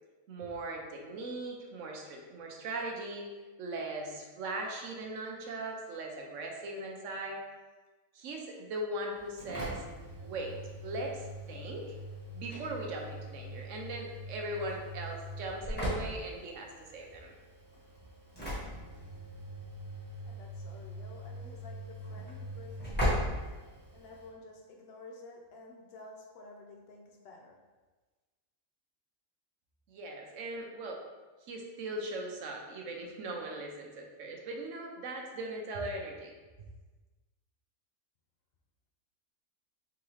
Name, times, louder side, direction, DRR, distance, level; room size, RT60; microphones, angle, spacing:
voice 1, 0.3-3.3 3.6-7.4 8.1-9.8 10.2-10.5 10.8-11.9 12.3-17.3 29.9-31.0 31.4-36.3, right 2 dB, 65° right, 1 dB, 1.0 m, -39 dB
Engine / Slam, 9.1-24.3, equal, 10° left, 1.1 m, -39 dB
voice 2, 20.2-23.4 23.9-27.6, left 2 dB, 55° left, 1 dB, 0.7 m, -51 dB
3.9 x 3.6 x 3.1 m, 1.3 s
omnidirectional pair, 1.5 m